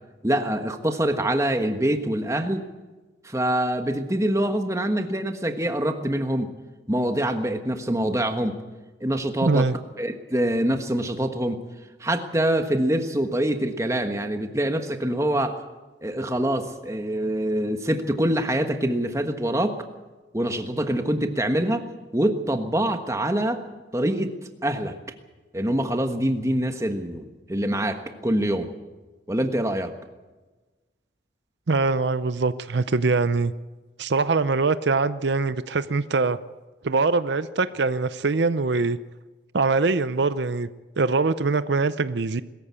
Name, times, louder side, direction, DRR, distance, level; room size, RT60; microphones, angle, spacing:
voice 1, 0.2-2.6 3.2-6.5 6.9-8.6 9.0-9.7 10.0-11.6 12.0-15.6 16.0-19.8 20.3-21.8 22.1-23.6 23.9-24.3 24.6-24.9 25.5-28.7 29.3-29.9, right 1 dB, 15° right, 7 dB, 1.4 m, -25 dB
voice 2, 9.4-9.8 31.7-33.5 34.0-36.4 36.8-39.0 39.5-40.7 41.0-42.4, right 3 dB, 70° right, 14 dB, 0.6 m, -23 dB
21.5 x 14.5 x 8.3 m, 1.2 s
head